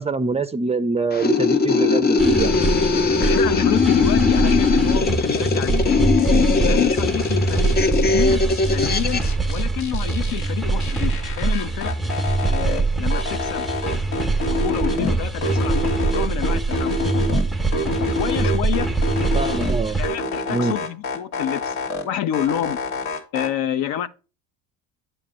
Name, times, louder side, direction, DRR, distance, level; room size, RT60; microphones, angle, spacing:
voice 1, 0.0-2.5 19.3-20.0 20.5-20.7, right 3 dB, 15° right, 0.5 m, -24 dB
sound 1, 1.1-9.3, left 5 dB, 25° left, 0.7 m, -20 dB
sound 2, 2.2-20.1, right 3 dB, ahead, 0.9 m, -23 dB
voice 2, 3.2-6.0 6.5-8.4 8.7-11.9 12.5-13.7 14.5-17.0 18.0-18.9 19.9-21.8 22.0-22.8 23.3-24.1, left 11 dB, 60° left, 0.8 m, -28 dB
sound 3, 5.3-5.9 6.2-8.2 8.5-10.5 10.8-12.8 13.1-15.1 15.4-17.4 17.7-19.7 20.0-22.0 22.3-23.5, left 2 dB, 80° left, 2.3 m, -27 dB
8.8 x 3.3 x 6.2 m
supercardioid pair, 85°, 40 cm